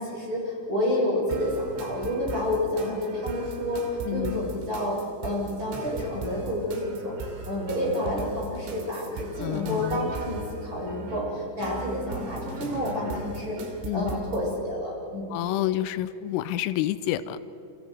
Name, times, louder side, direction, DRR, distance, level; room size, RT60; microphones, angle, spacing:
voice 1, 0.0-7.1 7.4-15.3, left 1 dB, 15° right, -4 dB, 6.9 m, -29 dB
sound 1, 1.3-14.4, right 2 dB, 75° right, 5.1 m, -38 dB
voice 2, 4.1-4.4 9.4-10.1 13.8-14.2 15.3-17.5, left 13 dB, 85° left, 13 dB, 3.3 m, -29 dB
29.5 x 28.0 x 4.8 m, 2.9 s
omnidirectional pair, 5.8 m